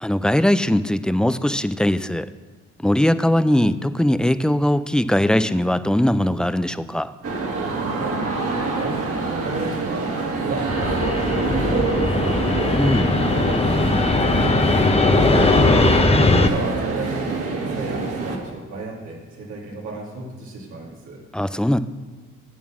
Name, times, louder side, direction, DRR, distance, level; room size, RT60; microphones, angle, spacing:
voice 1, 0.0-2.3 2.8-7.1 12.7-13.1 21.3-21.8, left 1 dB, 5° left, 13 dB, 0.3 m, -20 dB
sound 1, 7.2-18.4, right 3 dB, 50° right, 2.0 m, -26 dB
voice 2, 7.9-8.2 8.8-10.2 10.4-12.6 13.0-13.9 14.2-15.3 16.3-21.2, right 2 dB, 85° right, -4 dB, 2.5 m, -32 dB
Fixed-wing aircraft airplane, 10.7-16.5, left 2 dB, 20° left, 0.8 m, -19 dB
8.4 x 7.3 x 6.0 m, 1.4 s
cardioid pair, 90°, 30 cm